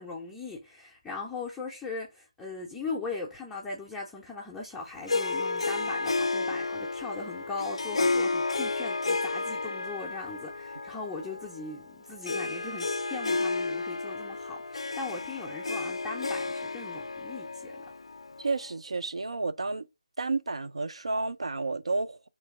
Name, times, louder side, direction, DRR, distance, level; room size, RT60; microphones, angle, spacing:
voice 1, 0.0-17.8, left 4 dB, 5° left, 0.5 m, -39 dB
Harp, 5.1-18.7, left 3 dB, 70° left, 0.3 m, -32 dB
voice 2, 18.4-19.9 20.2-22.3, right 3 dB, 75° right, 0.5 m, -31 dB
3.3 x 3.2 x 4.5 m
figure-of-eight pair, 160°, 3 cm